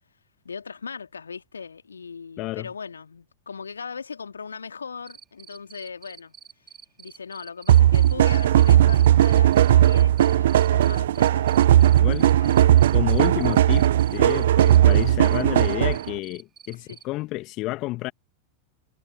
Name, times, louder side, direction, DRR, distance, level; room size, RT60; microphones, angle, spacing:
voice 1, 0.4-6.3 7.0-11.7 12.4-12.8 16.8-17.0, left 5 dB, 75° left, 2.1 m, -39 dB
voice 2, 2.4-2.7 12.0-12.3 12.9-18.1, left 19 dB, 40° left, 1.3 m, -30 dB
Cricket, 5.1-17.0, right 8 dB, 25° right, 3.1 m, -47 dB
sound 1, 7.7-16.1, right 12 dB, 60° right, 0.4 m, -17 dB
figure-of-eight pair, 90°, 0 cm